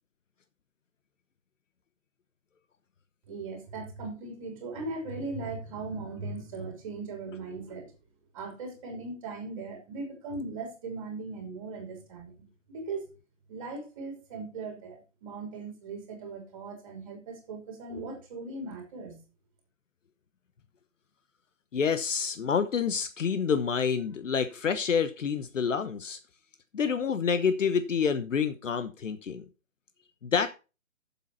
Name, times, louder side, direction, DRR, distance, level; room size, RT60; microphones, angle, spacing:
voice 1, 3.3-7.9 8.3-13.0 13.5-19.2, right 3 dB, 25° right, 3.2 m, -39 dB
voice 2, 21.7-26.2 26.7-29.5 30.2-30.5, left 6 dB, 75° left, 1.1 m, -28 dB
8.4 x 7.3 x 5.6 m
hypercardioid pair, 170°, 38 cm